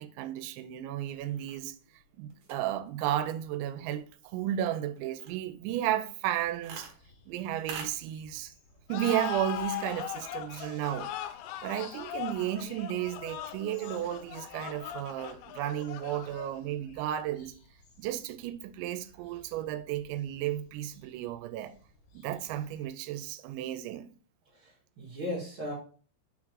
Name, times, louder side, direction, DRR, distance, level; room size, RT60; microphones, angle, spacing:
voice 1, 0.0-1.8 2.2-6.9 7.3-8.5 8.9-11.1 11.6-17.5 18.0-21.8 22.1-24.1, right 12 dB, 85° right, 2.9 m, -33 dB
sound 1, 0.9-14.3, right 4 dB, 60° right, 2.3 m, -53 dB
sound 2, 6.3-22.9, left 2 dB, 55° left, 2.8 m, -59 dB
sound 3, 8.9-16.7, left 11 dB, 85° left, 2.8 m, -40 dB
voice 2, 24.5-25.7, left 1 dB, 40° right, 2.0 m, -37 dB
6.4 x 3.7 x 4.6 m
omnidirectional pair, 5.2 m